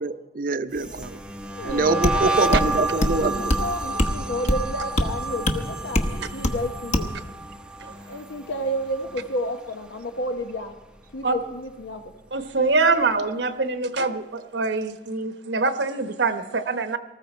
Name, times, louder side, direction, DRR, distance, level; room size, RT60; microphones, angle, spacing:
voice 1, 0.0-1.2 1.6-3.3, right 3 dB, 50° right, 11 dB, 0.7 m, -24 dB
sound 1, 0.7-9.9 10.2-10.6 10.9-12.5, right 2 dB, 5° right, 0.6 m, -31 dB
voice 2, 1.4-7.1 8.1-10.7 11.1-12.1, left 1 dB, 90° left, 5 dB, 0.9 m, -31 dB
sound 2, 1.7-1.8 2.0-2.2 2.5-2.7 3.0-3.2 3.5-3.7 4.0-4.2 4.5-4.6 5.0-5.1 5.5-5.6 5.9-6.1 6.4-6.6 6.9-7.1, left 1 dB, 40° left, 1.1 m, -22 dB
voice 3, 12.3-17.0, right 3 dB, 75° right, 9 dB, 1.0 m, -24 dB
19.0 x 14.0 x 4.4 m, 1.2 s
head